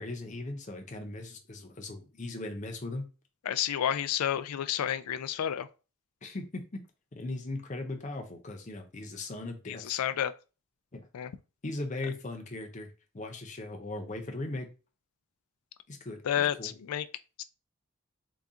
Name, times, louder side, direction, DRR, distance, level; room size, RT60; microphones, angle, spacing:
voice 1, 0.0-3.1 6.2-6.8 7.1-10.0 10.9-11.1 11.6-12.9 13.1-14.7 15.9-16.7, left 2 dB, 35° left, 0.6 m, -38 dB
voice 2, 3.5-5.7 9.7-10.3 11.1-11.3 16.2-17.1 17.4-17.5, left 10 dB, 85° left, 0.4 m, -30 dB
4.0 x 2.3 x 3.6 m
head